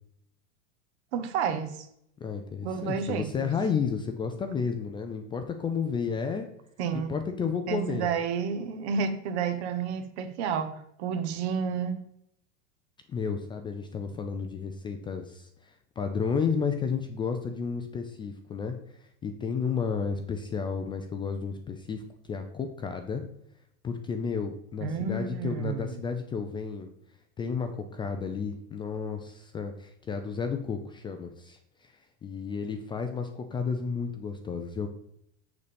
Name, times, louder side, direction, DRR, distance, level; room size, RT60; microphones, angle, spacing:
voice 1, 1.1-1.9 2.6-3.5 6.8-7.2 7.7-12.0 24.8-25.9, right 6 dB, 60° right, 1.4 m, -30 dB
voice 2, 2.2-6.5 6.9-8.1 13.1-22.0 22.3-23.2 23.8-26.9 27.4-31.9 32.2-34.9, left 6 dB, 15° left, 0.4 m, -32 dB
7.1 x 6.8 x 5.1 m
supercardioid pair, 150°, 36 cm